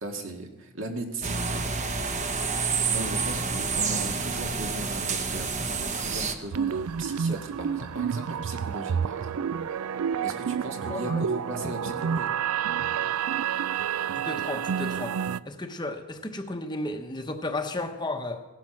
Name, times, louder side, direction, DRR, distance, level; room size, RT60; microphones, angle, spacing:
voice 1, 0.0-1.9 2.8-9.4 10.2-12.3, right 1 dB, 60° right, 3 dB, 2.0 m, -37 dB
sound 1, 1.2-6.3, right 5 dB, 30° right, 0.9 m, -28 dB
sound 2, 6.5-15.4, right 7 dB, 85° right, 0.4 m, -29 dB
voice 2, 10.9-11.2 14.1-15.1 15.5-18.4, left 2 dB, 20° left, 6 dB, 0.9 m, -33 dB
17.5 x 12.0 x 6.1 m, 1.2 s
head